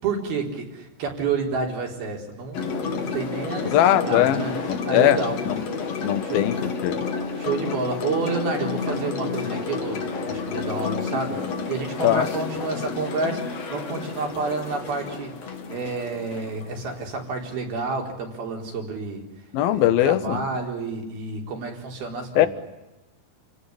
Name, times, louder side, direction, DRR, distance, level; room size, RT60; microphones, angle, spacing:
voice 1, 0.0-4.5 4.8-5.4 6.2-6.4 7.4-15.3 15.7-19.3 19.7-22.5, right 4 dB, 65° right, 2 dB, 6.1 m, -29 dB
sound 1, 2.5-17.3, left 4 dB, 45° left, 3.0 m, -30 dB
voice 2, 3.7-4.4 4.7-5.2 5.5-5.6 6.0-7.0 12.0-12.3 19.5-20.4 22.4-22.5, left 12 dB, 70° left, 12 dB, 3.0 m, -20 dB
29.5 x 17.5 x 10.0 m, 1.0 s
omnidirectional pair, 4.8 m